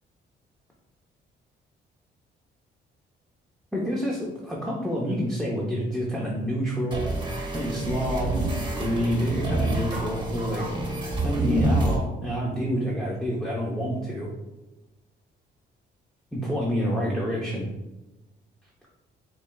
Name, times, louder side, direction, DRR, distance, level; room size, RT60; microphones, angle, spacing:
voice 1, 3.7-7.0 7.5-10.7 11.2-14.3 16.3-17.7, equal, ahead, -4 dB, 0.8 m, -28 dB
sound 1, 6.9-12.0, right 1 dB, 25° right, 1.2 m, -27 dB
5.9 x 3.3 x 2.3 m, 1.0 s
cardioid pair, 90°, 20 cm